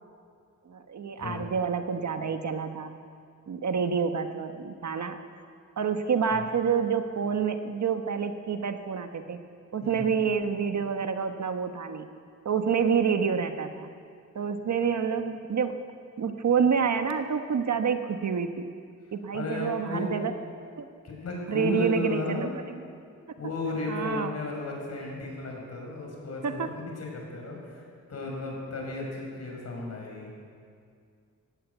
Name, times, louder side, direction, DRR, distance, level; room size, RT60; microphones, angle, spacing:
voice 1, 0.7-3.0 3.5-5.2 5.8-9.4 9.7-12.1 12.4-13.9 14.3-15.7 16.2-18.7 19.1-20.3 20.8-20.9 21.5-22.5 23.9-24.3 26.4-26.7, right 6 dB, 65° right, 7 dB, 1.3 m, -28 dB
voice 2, 19.3-20.1 21.0-22.6 23.4-26.7 27.0-27.8 28.1-30.3, left 2 dB, 55° left, -1 dB, 5.9 m, -34 dB
19.0 x 17.5 x 8.1 m, 2.3 s
wide cardioid pair, 165°, 31 cm